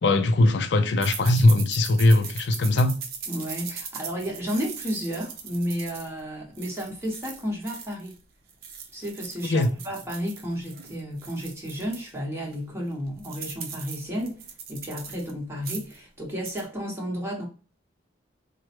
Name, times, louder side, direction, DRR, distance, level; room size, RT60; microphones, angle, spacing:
voice 1, 0.0-3.0 9.5-9.7, left 2 dB, 65° left, 0.4 m, -20 dB
sound 1, 1.0-8.2 8.5-12.1 12.5-12.6 12.9-15.3 15.6-16.0 16.3-16.6, right 6 dB, 55° right, 0.6 m, -40 dB
voice 2, 3.3-8.1 8.9-17.5, equal, 15° right, 1.2 m, -32 dB
4.6 x 2.1 x 2.9 m
head